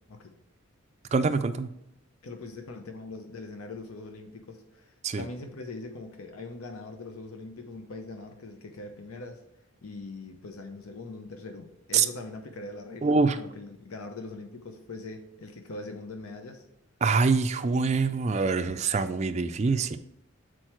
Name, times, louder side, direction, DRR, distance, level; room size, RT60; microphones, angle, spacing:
voice 1, 1.1-1.7 5.0-5.2 11.9-12.0 13.0-13.4 17.0-20.0, right 4 dB, 30° right, 8 dB, 0.3 m, -24 dB
voice 2, 2.2-9.4 9.8-16.6 19.7-19.8, left 3 dB, 85° left, 5 dB, 0.8 m, -42 dB
6.3 x 4.5 x 4.4 m, 0.83 s
head